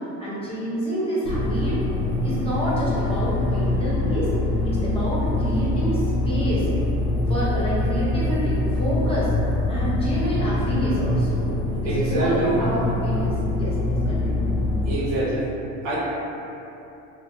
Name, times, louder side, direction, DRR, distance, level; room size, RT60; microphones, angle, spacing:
voice 1, 0.2-1.8 2.2-4.3 4.6-6.7 7.3-9.3 9.7-11.4 11.8-14.3, equal, 15° left, -10 dB, 0.9 m, -28 dB
sound 1, 1.2-15.0, left 1 dB, 70° left, 0.8 m, -24 dB
voice 2, 11.8-12.6 14.8-15.5 15.8-16.0, right 2 dB, 85° right, -6 dB, 0.8 m, -24 dB
2.6 x 2.1 x 2.7 m, 2.9 s
supercardioid pair, 90°, 34 cm